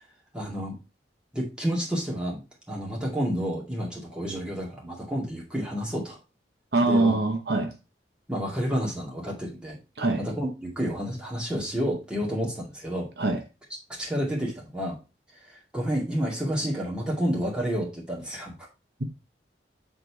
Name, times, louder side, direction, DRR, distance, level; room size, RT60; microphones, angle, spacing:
voice 1, 0.3-0.8 1.3-2.4 2.7-6.2 6.8-7.2 8.3-9.8 10.2-13.1 14.0-15.0 15.4-18.5, equal, 5° right, -3 dB, 2.2 m, -30 dB
voice 2, 6.7-7.7 10.0-10.2 13.2-13.4, right 2 dB, 65° right, 5 dB, 1.0 m, -23 dB
6.8 x 4.0 x 4.6 m, 0.29 s
head